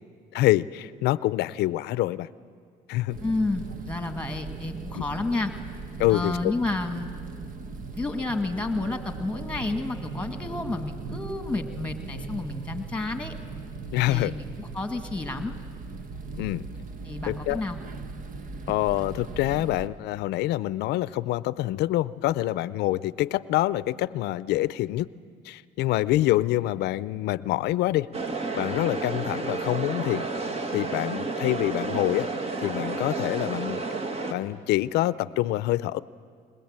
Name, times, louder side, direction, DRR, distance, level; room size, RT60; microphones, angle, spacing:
voice 1, 0.3-2.3 2.9-3.2 4.9-5.0 6.0-6.5 13.9-14.3 16.4-16.6 17.3-17.6 18.7-25.1 25.4-28.1 28.5-30.2 30.7-32.3 32.6-33.8 34.3-36.0, left 16 dB, 80° left, 18 dB, 0.6 m, -26 dB
sound 1, 3.1-19.9, right 4 dB, 50° right, 1.3 m, -38 dB
voice 2, 3.2-5.5 6.1-7.1 8.0-13.3 14.1-15.5 17.1-17.8, left 2 dB, 5° left, 7 dB, 2.0 m, -30 dB
sound 2, 28.1-34.3, right 3 dB, 35° right, 1.8 m, -31 dB
21.0 x 21.0 x 8.9 m, 2.2 s
cardioid pair, 110°, 17 cm